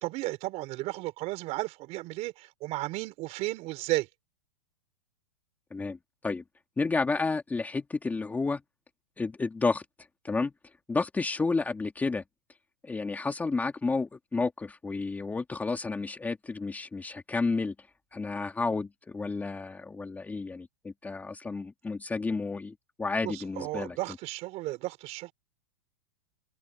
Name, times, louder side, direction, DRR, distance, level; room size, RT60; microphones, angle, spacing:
voice 1, 0.0-4.1 23.2-25.3, right 20 dB, 40° right, 5.0 m, -34 dB
voice 2, 6.8-8.6 9.2-9.8 10.2-10.5 10.9-12.2 12.8-17.7 18.1-24.0, left 3 dB, 10° left, 2.1 m, -31 dB
open air
hypercardioid pair, 140°, 17 cm